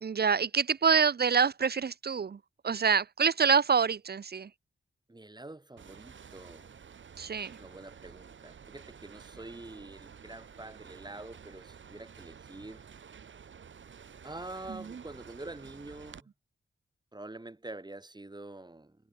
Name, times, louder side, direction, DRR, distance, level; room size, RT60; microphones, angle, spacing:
voice 1, 0.0-2.4 2.6-4.5 7.2-7.5, right 6 dB, 55° right, 1.0 m, -26 dB
voice 2, 5.1-6.7 7.6-12.8 14.2-16.3 17.1-19.0, right 2 dB, 20° right, 4.6 m, -46 dB
sound 1, 5.8-16.2, right 7 dB, 75° right, 5.2 m, -51 dB
cardioid pair, 65°, 20 cm